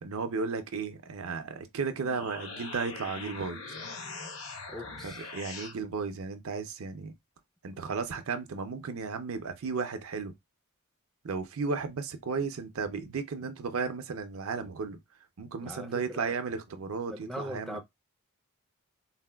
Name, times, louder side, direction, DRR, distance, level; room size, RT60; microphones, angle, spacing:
voice 1, 0.0-3.6 5.0-7.1 7.6-10.3 11.2-15.0 15.4-17.8, right 5 dB, 70° right, 0.5 m, -34 dB
sound 1, 2.0-5.8, left 3 dB, 65° left, 0.8 m, -42 dB
voice 2, 4.7-5.3 7.8-7.9 15.6-16.4 17.1-17.8, equal, ahead, 0.4 m, -41 dB
4.0 x 2.1 x 2.2 m
head